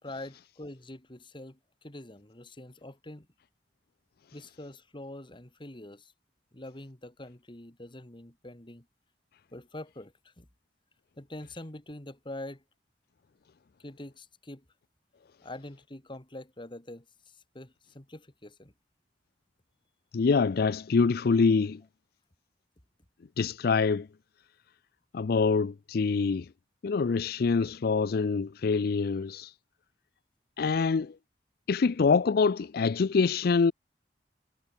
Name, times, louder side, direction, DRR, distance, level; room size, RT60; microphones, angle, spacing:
voice 1, 0.0-3.3 4.3-6.1 6.5-8.9 9.5-10.5 11.2-12.6 13.8-14.6 15.4-18.7, left 1 dB, 30° left, 2.2 m, -45 dB
voice 2, 20.1-21.8 23.4-24.1 25.1-26.5 26.8-29.5 30.6-31.1 31.7-33.7, left 4 dB, 60° left, 0.4 m, -25 dB
head